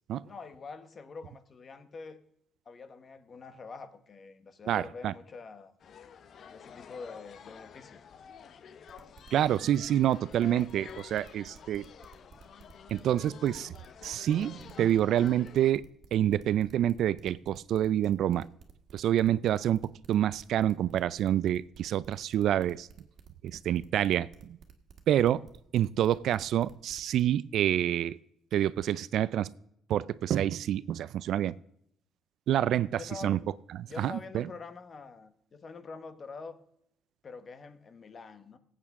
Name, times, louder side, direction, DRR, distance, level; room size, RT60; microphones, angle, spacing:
voice 1, 0.2-2.2 2.6-5.7 6.5-8.0 33.0-33.5 33.8-36.6 37.2-38.6, left 4 dB, 35° left, 1.0 m, -45 dB
voice 2, 4.7-5.1 9.3-11.9 12.9-13.7 14.0-15.8 16.1-18.5 18.9-22.9 23.4-24.6 25.1-25.4 25.7-28.2 28.5-29.5 29.9-31.5 32.5-33.4 34.0-34.5, right 11 dB, 65° right, 0.4 m, -27 dB
sound 1, 5.8-15.7, left 7 dB, 50° left, 0.7 m, -50 dB
sound 2, 8.9-27.2, right 7 dB, 50° right, 1.7 m, -53 dB
19.0 x 8.4 x 3.6 m
cardioid pair, 130°, 0 cm